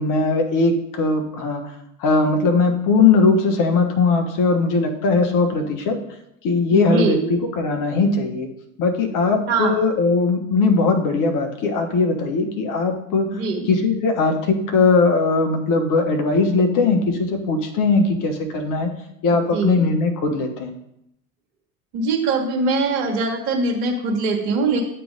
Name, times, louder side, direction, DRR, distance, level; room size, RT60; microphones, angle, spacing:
voice 1, 0.0-1.6 2.0-6.0 6.4-8.5 8.8-13.4 13.7-18.9 19.2-20.7, left 3 dB, 45° left, 4 dB, 1.3 m, -19 dB
voice 2, 6.7-7.2 9.5-9.8 13.3-13.7 19.5-19.8 21.9-24.8, right 3 dB, 60° right, 1 dB, 1.5 m, -22 dB
8.3 x 3.4 x 6.5 m, 0.79 s
figure-of-eight pair, 70°, 45 cm